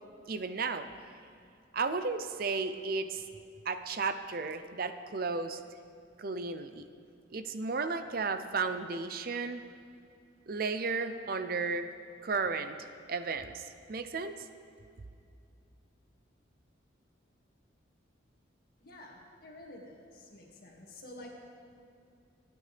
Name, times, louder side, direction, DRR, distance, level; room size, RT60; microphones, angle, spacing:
voice 1, 0.3-0.9 1.7-3.2 3.7-5.6 6.2-6.8 7.3-9.6 10.5-11.9 12.2-12.8 13.1-14.5, right 4 dB, 45° right, 9 dB, 0.5 m, -34 dB
voice 2, 18.8-21.3, left 1 dB, 50° left, -1 dB, 2.2 m, -50 dB
26.5 x 9.4 x 3.4 m, 2.5 s
head